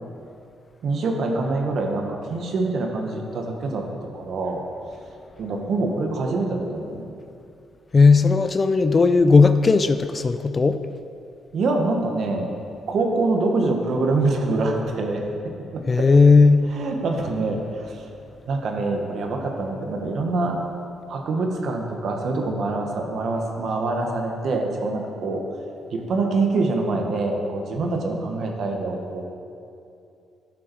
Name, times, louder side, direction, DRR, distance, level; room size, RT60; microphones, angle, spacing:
voice 1, 0.8-3.8 4.1-4.6 5.4-7.1 11.5-12.5 12.9-15.2 15.7-15.8 16.7-18.0 18.5-20.6 21.1-25.4 25.9-29.3, right 3 dB, 65° right, 2 dB, 1.5 m, -25 dB
voice 2, 7.9-10.8 15.9-16.7, left 4 dB, 30° left, 11 dB, 0.4 m, -16 dB
12.0 x 6.3 x 4.6 m, 2.6 s
cardioid pair, 90°, 0 cm